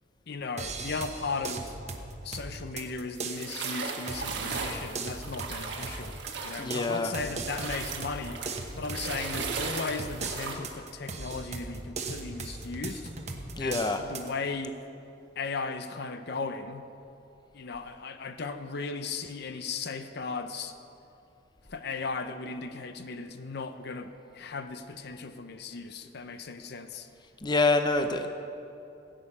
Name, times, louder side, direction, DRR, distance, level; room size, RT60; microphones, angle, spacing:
voice 1, 0.3-1.7 2.2-8.4 8.8-13.1 13.6-14.8 15.4-16.8 17.5-20.7 21.7-27.1, left 4 dB, 60° left, 9 dB, 0.7 m, -36 dB
sound 1, 0.6-14.3, right 3 dB, 40° right, 1.1 m, -39 dB
sound 2, 3.2-7.1 7.4-10.5, right 4 dB, 65° right, 1.5 m, -37 dB
voice 2, 6.6-7.1 13.6-14.0 27.4-28.3, left 3 dB, 25° left, 7 dB, 0.6 m, -26 dB
16.5 x 8.8 x 5.6 m, 2.7 s
head